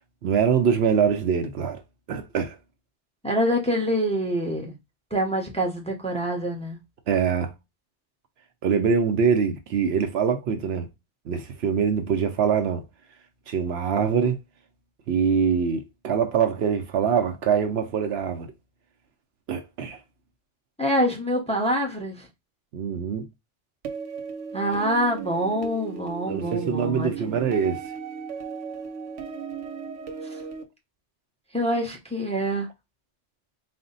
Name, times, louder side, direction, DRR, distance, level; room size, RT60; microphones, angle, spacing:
voice 1, 0.2-1.8 2.1-2.6 7.1-7.5 8.6-10.9 11.3-12.8 13.5-14.4 15.1-18.5 19.5-20.0 22.7-23.3 26.3-27.8, right 6 dB, 70° right, 0.8 m, -24 dB
voice 2, 3.2-4.8 5.1-6.8 20.8-22.3 24.5-27.4 31.5-32.7, equal, 5° left, 0.8 m, -26 dB
sound 1, 23.8-30.6, right 6 dB, 90° right, 1.1 m, -36 dB
4.2 x 2.1 x 3.9 m
omnidirectional pair, 1.2 m